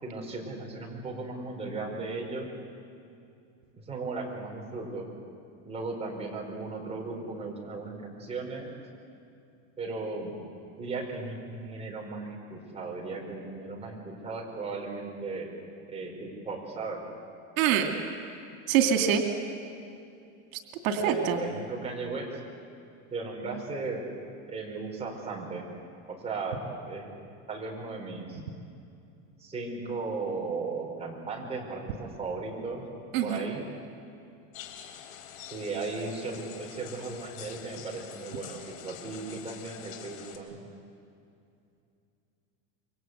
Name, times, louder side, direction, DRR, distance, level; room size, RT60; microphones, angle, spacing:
voice 1, 0.0-2.5 3.9-5.0 5.6-8.7 9.8-10.4 10.8-15.5 15.9-17.0 21.0-22.3 23.1-24.0 24.5-25.7 26.1-27.1 27.5-28.4 29.4-32.8 33.2-33.6 35.5-40.6, right 3 dB, 15° right, -1 dB, 4.9 m, -36 dB
voice 2, 17.6-17.9 18.7-19.2 20.8-21.4 33.1-33.5, right 8 dB, 85° right, 4 dB, 2.6 m, -24 dB
sound 1, 34.5-40.4, left 9 dB, 85° left, 3.4 m, -46 dB
27.5 x 24.0 x 8.1 m, 2.5 s
supercardioid pair, 150°, 40 cm